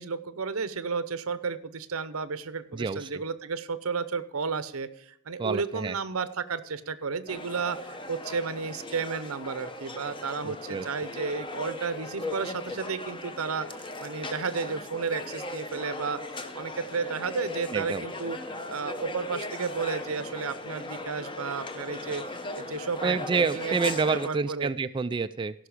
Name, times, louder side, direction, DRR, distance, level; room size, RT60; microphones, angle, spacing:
voice 1, 0.0-18.4 18.7-22.2 22.5-23.8 24.1-24.7, right 5 dB, 90° right, 14 dB, 0.8 m, -33 dB
voice 2, 2.7-3.2 5.4-6.0 10.4-10.9 17.7-18.0 23.0-25.5, right 4 dB, 25° right, 10 dB, 0.3 m, -28 dB
sound 1, 7.3-24.3, left 2 dB, 25° left, 0.9 m, -38 dB
16.5 x 6.0 x 4.9 m, 0.74 s
head